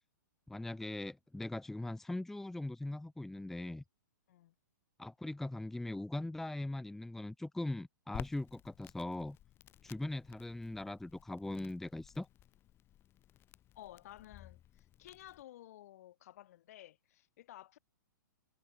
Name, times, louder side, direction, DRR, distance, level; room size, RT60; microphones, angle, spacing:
voice 1, 0.5-3.8 5.0-9.4 9.8-12.3, left 2 dB, 5° left, 0.7 m, -40 dB
Crackle, 8.1-15.4, left 12 dB, 20° left, 1.2 m, -54 dB
voice 2, 13.8-17.8, left 14 dB, 50° left, 2.2 m, -54 dB
figure-of-eight pair, 120°, 10 cm